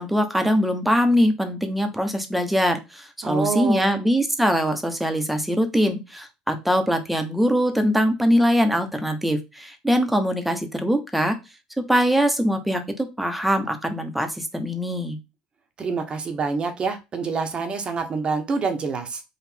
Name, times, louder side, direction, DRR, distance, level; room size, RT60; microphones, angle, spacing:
voice 1, 0.0-11.4 11.8-15.2, equal, 5° right, 6 dB, 1.0 m, -22 dB
voice 2, 3.2-3.9 15.8-19.2, right 4 dB, 35° right, 6 dB, 1.1 m, -26 dB
4.1 x 2.5 x 4.4 m, 0.25 s
supercardioid pair, 90°, 3 cm